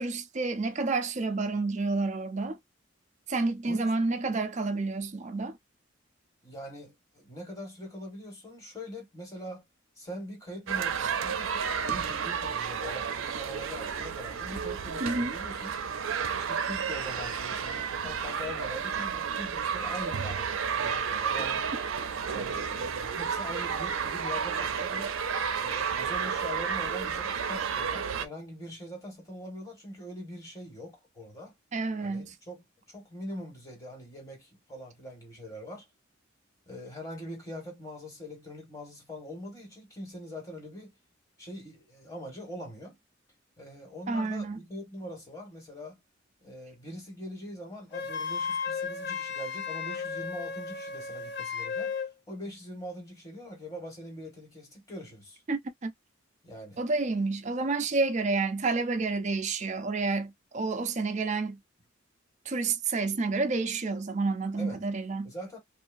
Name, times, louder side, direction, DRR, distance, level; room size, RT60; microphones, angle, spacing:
voice 1, 0.0-2.6 3.3-5.6 11.0-11.1 15.0-15.3 31.7-32.4 44.1-44.6 55.5-55.9 56.8-61.6 62.5-65.3, right 3 dB, 35° right, 0.5 m, -29 dB
voice 2, 6.4-9.7 10.0-15.7 16.3-21.6 22.3-25.1 25.6-31.5 32.0-35.9 36.7-40.9 41.4-43.0 43.6-46.0 46.4-51.9 52.3-55.4 56.4-56.8 64.6-64.8 65.2-65.6, equal, 15° left, 1.4 m, -43 dB
sound 1, 10.7-28.3, right 6 dB, 90° right, 0.5 m, -31 dB
Wind instrument woodwind instrument, 47.9-52.1, left 5 dB, 60° left, 0.6 m, -34 dB
2.8 x 2.3 x 2.5 m
head